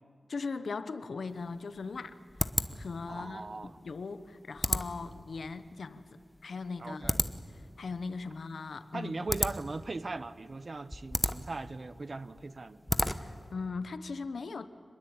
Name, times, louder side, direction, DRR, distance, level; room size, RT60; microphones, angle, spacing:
voice 1, 0.3-3.4 3.8-7.1 7.5-9.2 13.1-14.7, left 4 dB, 85° left, 12 dB, 1.1 m, -39 dB
sound 1, 1.3-13.5, equal, 5° left, 1.0 m, -36 dB
voice 2, 3.1-3.8 6.8-7.2 8.9-12.8, right 3 dB, 45° right, 14 dB, 0.9 m, -39 dB
27.0 x 21.0 x 8.9 m, 2.1 s
wide cardioid pair, 90°, 0 cm